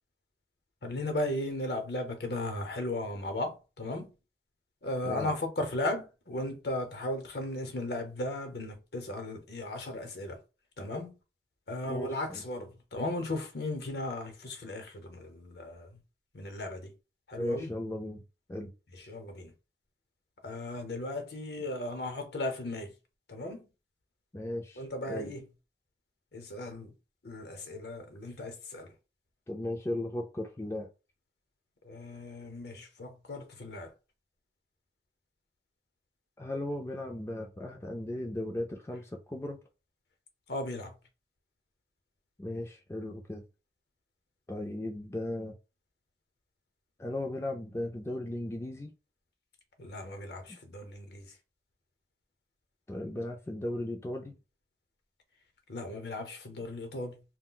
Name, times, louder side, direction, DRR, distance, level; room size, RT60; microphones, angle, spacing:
voice 1, 0.8-4.1 4.8-10.4 10.8-11.1 11.7-16.0 16.3-16.9 17.3-17.7 18.9-19.5 20.4-22.9 23.3-23.6 24.8-25.4 26.3-26.9 27.2-28.9 31.8-33.9 40.5-41.0 49.8-51.4 55.7-57.2, left 1 dB, 70° left, 0.8 m, -36 dB
voice 2, 11.8-12.4 17.4-18.2 18.5-18.7 24.3-25.3 29.5-30.9 36.4-39.6 42.4-43.5 44.5-45.6 47.0-48.9 50.5-50.6 52.9-54.3, left 1 dB, 15° left, 0.3 m, -36 dB
2.4 x 2.1 x 3.7 m
head